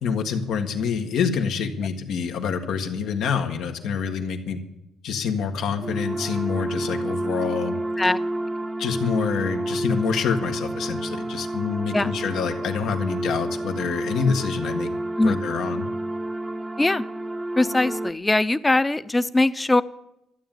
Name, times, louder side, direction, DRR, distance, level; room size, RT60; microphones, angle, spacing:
voice 1, 0.0-4.6 5.0-7.8 8.0-8.1 8.8-14.9 15.2-15.9, left 6 dB, 80° left, 5 dB, 1.7 m, -26 dB
sound 1, 5.8-18.1, right 1 dB, 15° right, 0.7 m, -30 dB
voice 2, 17.6-19.8, left 2 dB, 15° left, 15 dB, 0.7 m, -21 dB
12.5 x 9.2 x 9.2 m, 0.84 s
cardioid pair, 90°, 0 cm